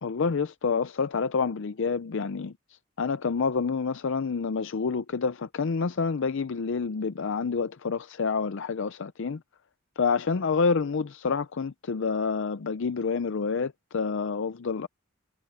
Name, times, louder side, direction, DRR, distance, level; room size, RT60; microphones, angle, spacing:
voice 1, 0.0-2.5 3.0-9.4 10.0-14.9, left 5 dB, 65° left, 0.5 m, -28 dB
head